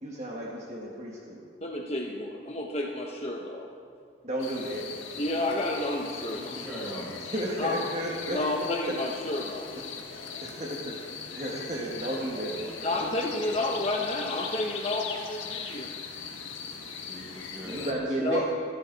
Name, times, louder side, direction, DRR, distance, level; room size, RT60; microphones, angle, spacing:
voice 1, 0.0-1.5 4.2-4.9 7.3-8.4 10.4-11.0 11.4-12.9 17.6-18.5, right 1 dB, 35° right, -3 dB, 1.8 m, -33 dB
voice 2, 1.6-3.7 5.2-6.5 7.6-7.9 8.3-9.7 12.8-15.9 18.2-18.5, left 2 dB, 30° left, 0 dB, 1.1 m, -30 dB
sound 1, 4.4-17.9, left 5 dB, 85° left, 1.7 m, -39 dB
voice 3, 6.3-7.2 12.3-13.1 17.0-18.2, equal, 5° right, -7 dB, 5.5 m, -41 dB
26.5 x 12.5 x 4.1 m, 2.3 s
head